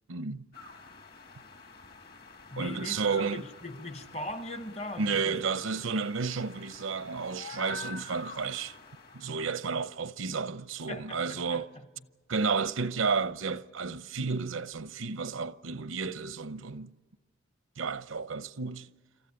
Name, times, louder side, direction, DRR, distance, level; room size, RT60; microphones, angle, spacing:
voice 1, 0.1-0.4 2.6-3.4 5.0-8.8 9.1-11.7 12.3-16.9 17.8-18.9, right 5 dB, 90° right, 0.7 m, -32 dB
sound 1, 0.5-9.7, left 3 dB, 50° left, 2.2 m, -47 dB
voice 2, 2.5-5.4 10.9-11.6, left 1 dB, 30° left, 1.0 m, -40 dB
27.5 x 15.0 x 9.7 m
head